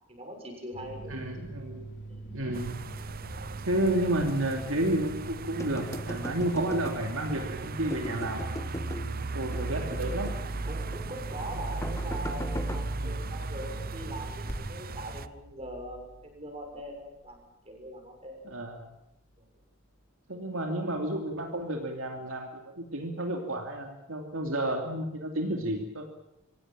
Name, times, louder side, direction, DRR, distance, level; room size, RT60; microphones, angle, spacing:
voice 1, 0.1-1.1 2.1-2.2 9.7-10.3 10.6-18.5 19.4-19.5, right 1 dB, 30° right, 3 dB, 6.8 m, -42 dB
sound 1, 0.7-17.1, right 2 dB, 55° left, 3.5 m, -43 dB
voice 2, 1.1-1.8 2.3-2.8 3.6-8.5 9.3-10.3 13.0-13.2 18.5-18.9 20.3-26.0, right 1 dB, 70° right, 2 dB, 2.9 m, -31 dB
sound 2, 2.5-15.3, right 3 dB, 45° right, 0.9 m, -37 dB
sound 3, 5.6-7.3 7.9-9.1 9.5-10.5 10.9-11.1 11.8-12.8, left 1 dB, 15° left, 1.4 m, -39 dB
25.5 x 17.5 x 9.0 m, 0.86 s
head